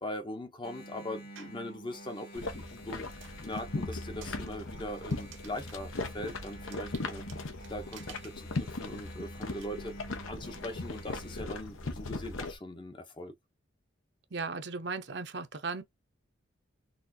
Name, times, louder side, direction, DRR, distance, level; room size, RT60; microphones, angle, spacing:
voice 1, 0.0-3.0 3.4-7.2 7.7-10.0 10.3-13.3, left 1 dB, 25° left, 0.6 m, -41 dB
Engine, 0.6-11.4, right 1 dB, 50° left, 1.4 m, -49 dB
sound 1, 1.4-1.7 2.2-9.7, right 8 dB, 85° right, 1.1 m, -55 dB
sound 2, 2.3-12.6, left 3 dB, 90° left, 0.9 m, -39 dB
voice 2, 14.3-15.8, right 4 dB, 60° right, 0.7 m, -36 dB
4.1 x 2.5 x 2.6 m
head